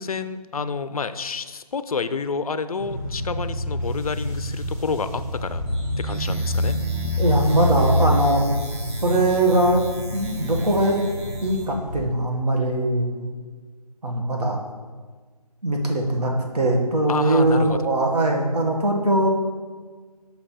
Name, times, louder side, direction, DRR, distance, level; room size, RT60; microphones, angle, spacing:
voice 1, 0.0-5.6 6.0-6.8 17.1-17.8, left 5 dB, 60° left, 12 dB, 0.4 m, -28 dB
sound 1, 2.8-12.0, equal, 20° right, 1.1 m, -27 dB
sound 2, 5.7-11.7, right 1 dB, 40° right, 1.2 m, -41 dB
voice 2, 7.2-8.4 9.0-9.8 10.1-11.0 11.4-13.3 14.0-14.6 15.6-19.3, right 1 dB, 70° right, 1 dB, 1.4 m, -21 dB
5.8 x 3.3 x 5.6 m, 1.4 s
figure-of-eight pair, 170°, 21 cm